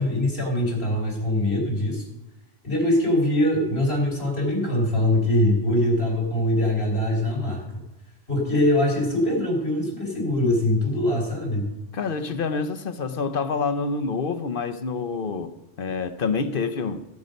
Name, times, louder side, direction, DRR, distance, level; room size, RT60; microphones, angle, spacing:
voice 1, 0.0-2.0 2.6-7.7 8.3-11.7, left 1 dB, 80° left, 4.1 m, -23 dB
voice 2, 11.9-17.1, left 4 dB, 60° left, 0.9 m, -27 dB
16.5 x 7.9 x 5.2 m
omnidirectional pair, 1.0 m